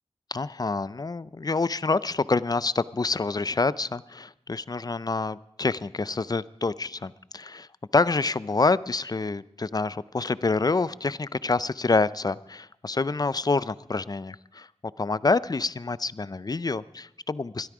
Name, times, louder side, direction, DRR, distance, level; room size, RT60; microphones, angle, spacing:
voice 1, 0.3-7.7 7.9-14.7 15.0-17.7, left 3 dB, 35° left, 18 dB, 0.5 m, -27 dB
21.0 x 12.5 x 4.9 m, 0.84 s
wide cardioid pair, 50°, 11 cm